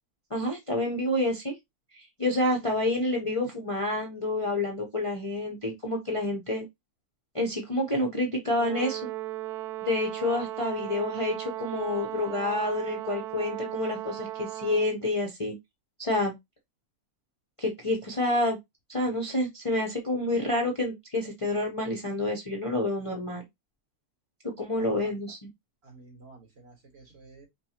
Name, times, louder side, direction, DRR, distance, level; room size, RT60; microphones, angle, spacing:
voice 1, 0.3-1.5 1.9-6.6 7.3-9.1 9.8-15.5 16.0-16.3 17.6-18.6 18.9-23.4 24.6-25.4, left 1 dB, 30° left, 0.6 m, -28 dB
Brass instrument, 8.6-15.0, right 14 dB, 85° right, 1.1 m, -36 dB
voice 2, 24.7-25.2 25.8-27.5, right 3 dB, 45° right, 1.9 m, -51 dB
5.3 x 2.3 x 2.8 m
omnidirectional pair, 1.6 m